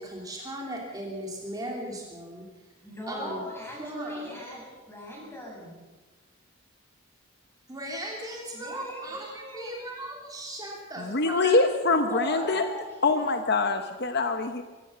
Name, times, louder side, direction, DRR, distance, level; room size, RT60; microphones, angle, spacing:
voice 1, 0.0-2.4 3.1-3.4 3.8-4.4 7.7-11.6 11.9-12.5, right 1 dB, 15° right, -1 dB, 3.1 m, -37 dB
voice 2, 2.8-5.8 8.5-9.8 12.1-13.5, left 1 dB, 10° left, -2 dB, 7.4 m, -41 dB
voice 3, 11.0-12.7 13.0-14.6, left 3 dB, 50° left, 7 dB, 1.0 m, -24 dB
24.0 x 15.5 x 6.9 m, 1.2 s
head